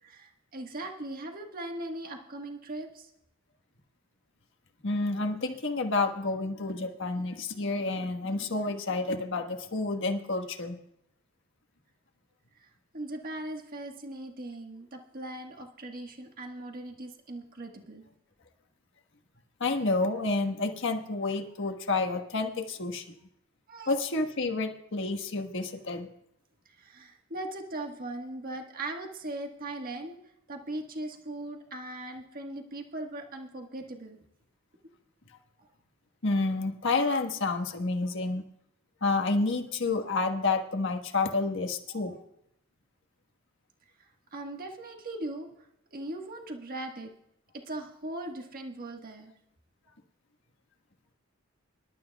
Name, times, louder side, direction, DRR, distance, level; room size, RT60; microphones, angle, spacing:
voice 1, 0.0-3.1 12.5-12.7 12.9-18.1 23.7-24.0 26.6-30.2 30.5-34.2 35.6-35.7 41.9-42.2 44.3-45.5 45.9-47.1 47.5-49.3, right 1 dB, 45° right, 3 dB, 1.5 m, -39 dB
voice 2, 4.8-10.8 19.6-23.2 23.9-26.1 36.2-38.4 39.0-42.2, left 3 dB, 65° left, 5 dB, 1.4 m, -29 dB
25.5 x 12.0 x 2.3 m, 0.79 s
head